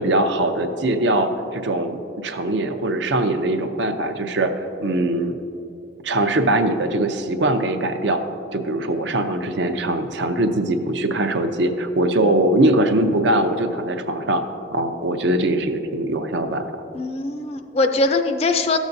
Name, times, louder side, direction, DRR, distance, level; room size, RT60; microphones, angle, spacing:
voice 1, 0.0-5.4 6.0-8.2 8.5-14.4 14.7-16.7, right 1 dB, 70° right, 7 dB, 0.6 m, -21 dB
voice 2, 16.9-18.8, left 3 dB, 35° left, 7 dB, 0.4 m, -21 dB
13.5 x 7.2 x 2.6 m, 2.7 s
head